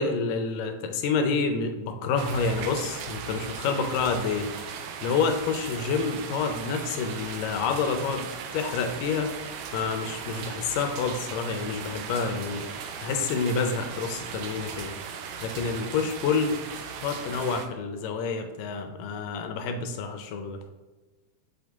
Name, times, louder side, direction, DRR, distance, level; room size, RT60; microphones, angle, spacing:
voice 1, 0.0-4.5 5.0-8.3 8.5-9.3 9.7-12.7 13.0-14.9 15.4-16.6 17.0-20.6, left 5 dB, 75° left, 5 dB, 2.2 m, -28 dB
sound 1, 2.2-17.7, right 6 dB, 75° right, 2.1 m, -38 dB
6.4 x 5.4 x 3.5 m, 1.2 s
omnidirectional pair, 4.1 m